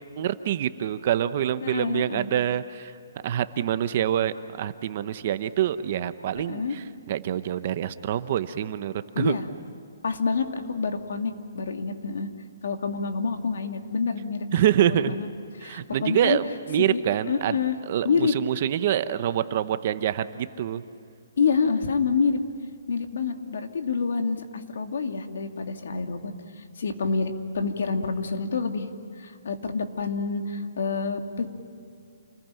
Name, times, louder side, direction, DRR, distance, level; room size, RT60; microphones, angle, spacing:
voice 1, 0.2-2.9 3.2-9.4 14.5-15.2 15.6-17.6 17.9-20.8, right 10 dB, 35° right, 12 dB, 0.9 m, -26 dB
voice 2, 1.6-2.3 6.3-6.8 9.1-9.5 10.0-12.3 12.6-14.5 14.8-15.3 15.6-16.4 16.8-17.0 17.3-17.8 18.0-18.3 21.4-22.4 22.9-26.3 26.8-28.9 29.2-31.5, left 5 dB, 65° left, 5 dB, 2.6 m, -27 dB
28.5 x 21.0 x 9.1 m, 2.5 s
hypercardioid pair, 170°, 0 cm